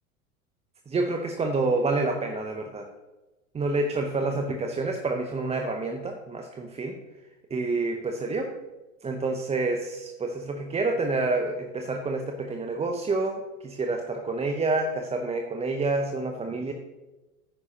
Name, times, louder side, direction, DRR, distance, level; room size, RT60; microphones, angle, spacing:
voice 1, 0.9-2.9 3.5-7.0 7.5-8.5 9.0-16.7, right 3 dB, 15° right, 4 dB, 0.7 m, -28 dB
10.0 x 9.6 x 2.9 m, 1.1 s
hypercardioid pair, 85°, 42 cm